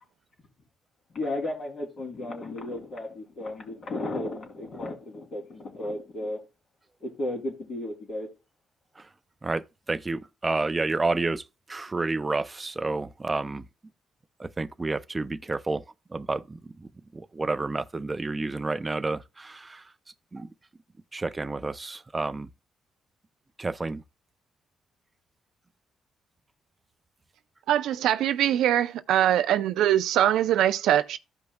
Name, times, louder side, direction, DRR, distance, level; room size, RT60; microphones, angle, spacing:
voice 1, 1.1-6.4 7.0-8.3, left 1 dB, 55° left, 3.0 m, -34 dB
voice 2, 9.4-13.7 14.4-15.8 16.1-19.8 20.3-20.5 21.1-22.5 23.6-24.0, right 3 dB, 20° right, 0.5 m, -30 dB
voice 3, 27.7-31.2, right 11 dB, 80° right, 0.5 m, -22 dB
14.5 x 5.2 x 2.3 m
cardioid pair, 90°, 0 cm